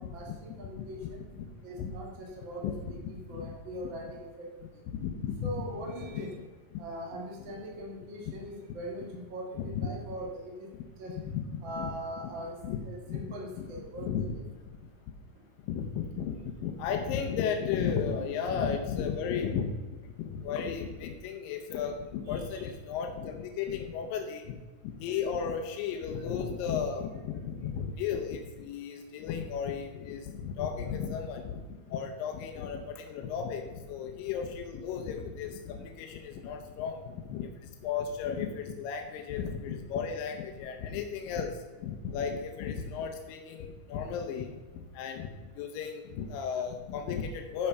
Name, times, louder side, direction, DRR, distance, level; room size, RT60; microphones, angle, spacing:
voice 1, 0.0-1.2 1.6-4.5 4.7-4.8 5.4-6.3 6.8-10.7 11.0-11.2 11.6-12.6 12.8-14.4 18.2-18.3 22.3-22.6, equal, 45° right, -2 dB, 2.0 m, -41 dB
voice 2, 5.0-5.5 6.1-6.2 9.6-9.9 11.3-11.9 12.6-12.8 13.1-13.2 13.6-13.7 14.0-14.4 15.7-16.4 16.6-19.7 20.3-24.6 25.0-31.6 31.9-33.6 33.9-37.0 37.3-37.5 37.8-41.5 41.8-44.5 45.0-45.3 45.6-47.7, left 7 dB, 85° left, 4 dB, 2.5 m, -34 dB
10.5 x 5.8 x 5.4 m, 1.3 s
omnidirectional pair, 3.9 m